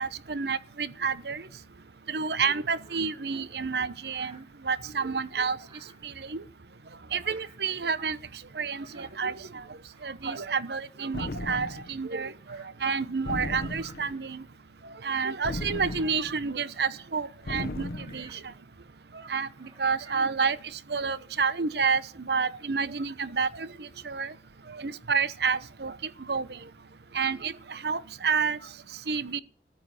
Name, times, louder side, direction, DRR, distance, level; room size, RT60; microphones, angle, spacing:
voice 1, 0.0-1.4 2.1-4.4 4.6-5.6 6.0-6.4 7.1-8.2 8.6-9.6 10.0-14.4 15.0-17.9 18.1-18.4 19.3-20.6 20.9-24.3 24.7-25.9 26.3-26.6 27.1-28.6 29.1-29.4, right 5 dB, 70° right, 0.9 m, -29 dB
Bird vocalization bird call bird song, 2.3-3.0 4.0-4.6 5.5-6.1 7.1-7.7 8.8-9.2 9.7-10.4 11.3-11.4 12.4-12.7 13.6-14.0 14.6-14.7 15.5-16.2 18.0-18.5 19.6-20.5, right 3 dB, 30° right, 4.9 m, -55 dB
sound 1, 11.1-12.0 13.3-14.2 15.4-16.5 17.5-18.3, left 1 dB, 60° left, 1.0 m, -36 dB
13.5 x 10.5 x 8.3 m
head